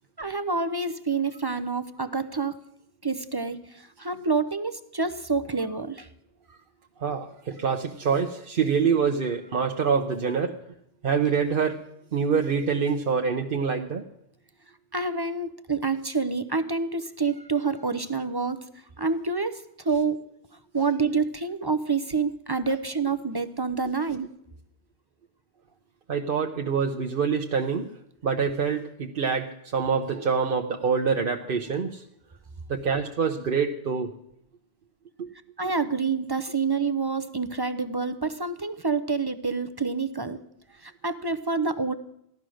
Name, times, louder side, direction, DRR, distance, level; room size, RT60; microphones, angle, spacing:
voice 1, 0.2-2.6 3.0-6.1 14.9-18.6 19.0-20.2 20.7-24.3 35.6-40.4 40.8-41.9, right 4 dB, 30° right, 11 dB, 0.6 m, -27 dB
voice 2, 7.0-10.6 11.0-11.8 12.1-14.0 22.7-22.8 26.1-27.9 28.2-32.0 32.7-34.1 35.2-35.3, right 6 dB, 60° right, 4 dB, 1.0 m, -26 dB
16.0 x 12.0 x 6.3 m, 0.77 s
omnidirectional pair, 1.0 m